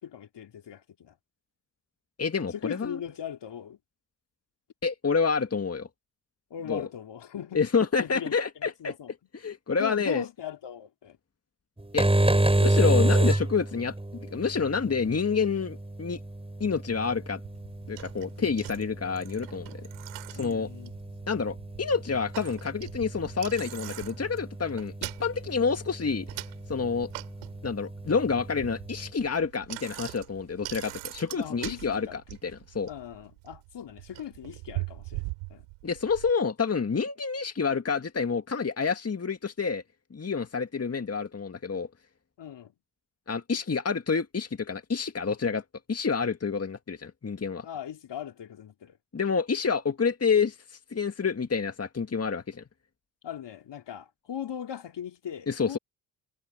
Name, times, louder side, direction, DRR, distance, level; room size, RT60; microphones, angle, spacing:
voice 1, 0.0-1.1 2.6-3.8 6.5-7.6 8.0-9.1 9.8-11.2 18.4-18.5 20.3-20.9 31.3-32.2 32.9-35.2 35.5-35.7 42.4-42.7 47.6-49.0 53.2-55.8, left 9 dB, 60° left, 3.2 m, -39 dB
voice 2, 2.2-3.0 4.8-5.9 6.7-6.8 7.5-8.9 9.3-10.2 11.9-12.1 12.6-16.2 16.6-17.4 17.9-19.8 20.3-20.7 21.3-26.3 26.7-27.1 27.6-32.9 35.8-39.8 40.1-41.9 43.3-47.7 49.1-52.6 55.5-55.8, left 5 dB, 30° left, 2.0 m, -28 dB
sound 1, 11.8-29.1, right 1 dB, 10° right, 5.4 m, -30 dB
Bicycle, 17.4-36.3, right 27 dB, 90° right, 6.0 m, -42 dB
hypercardioid pair, 45°, 47 cm